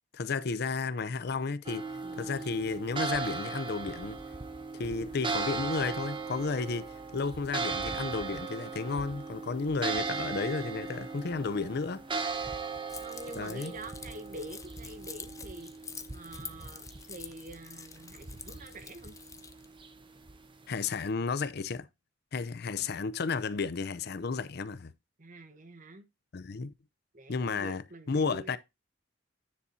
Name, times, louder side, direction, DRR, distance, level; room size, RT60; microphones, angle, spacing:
voice 1, 0.1-1.9 2.2-4.2 4.7-12.0 13.4-13.7 20.7-21.9 22.3-24.9 26.3-26.7 27.3-27.8 28.1-28.6, left 4 dB, 55° left, 0.6 m, -33 dB
sound 1, 1.6-20.9, right 4 dB, 25° right, 1.0 m, -38 dB
Keys jangling, 12.9-19.7, left 6 dB, 15° left, 0.7 m, -47 dB
voice 2, 13.0-15.7 16.1-19.1 25.2-26.1 27.1-28.6, right 1 dB, 45° right, 1.2 m, -46 dB
9.8 x 4.1 x 4.1 m
head